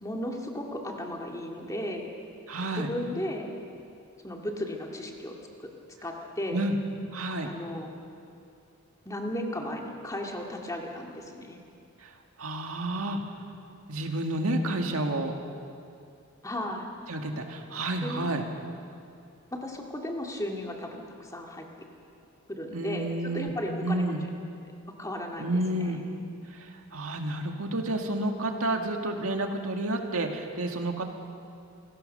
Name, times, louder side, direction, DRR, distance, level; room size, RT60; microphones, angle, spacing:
voice 1, 0.0-2.1 2.7-3.5 4.2-5.3 5.6-5.7 6.0-6.6 7.4-7.9 9.1-11.6 16.4-16.8 18.0-18.3 19.5-21.7 22.5-24.1 25.0-26.0, left 1 dB, 15° left, 1 dB, 2.1 m, -35 dB
voice 2, 2.5-2.9 6.5-6.7 7.1-7.5 12.0-12.1 12.4-13.2 13.9-15.3 17.1-18.4 22.7-23.5 23.8-24.2 25.4-26.0 26.5-31.0, right 1 dB, 70° right, 3 dB, 2.0 m, -30 dB
26.0 x 18.0 x 6.7 m, 2.5 s
head